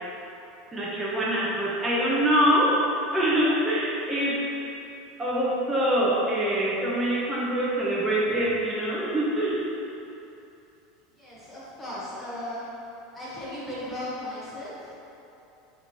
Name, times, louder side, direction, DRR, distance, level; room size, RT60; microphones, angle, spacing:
voice 1, 0.7-2.8 3.1-4.5 5.2-9.5, equal, 10° right, -7 dB, 0.7 m, -24 dB
voice 2, 11.2-12.6 13.1-14.9, left 1 dB, 10° left, -9 dB, 1.3 m, -36 dB
3.9 x 3.1 x 4.4 m, 2.8 s
supercardioid pair, 150°, 0 cm